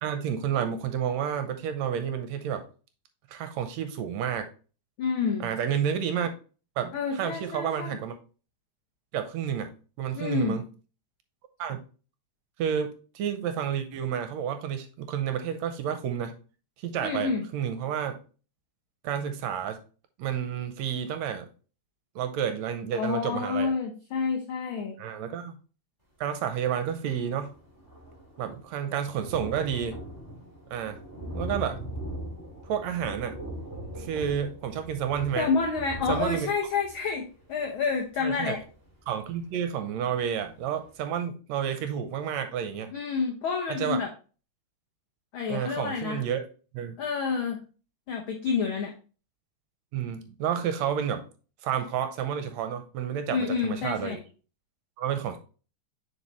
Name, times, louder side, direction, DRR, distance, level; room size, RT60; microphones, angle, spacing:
voice 1, 0.0-2.6 3.3-4.5 5.4-6.3 6.8-8.2 9.1-9.7 10.0-10.7 11.6-11.8 12.6-16.3 16.8-18.2 19.0-19.8 20.2-21.5 22.1-23.7 25.0-25.6 26.2-27.5 28.4-30.0 30.7-31.0 31.3-31.8 32.7-33.3 33.9-35.5 36.1-36.5 38.2-38.6 39.1-42.9 43.8-44.0 45.5-46.4 46.7-47.0 49.9-51.2 51.6-54.2 55.0-55.4, right 8 dB, 80° right, 8 dB, 1.8 m, -30 dB
voice 2, 5.0-5.5 6.9-8.0 10.2-10.6 17.0-17.5 22.9-25.0 35.4-38.6 42.9-44.1 45.3-46.2 47.0-47.6 48.1-48.9 53.3-54.2, left 5 dB, 80° left, 2 dB, 1.1 m, -29 dB
Thunder, 26.8-26.9 27.1-39.7 40.2-40.3 40.6-40.7, equal, 10° left, 2.1 m, -40 dB
6.9 x 4.7 x 3.0 m, 0.36 s
omnidirectional pair, 3.4 m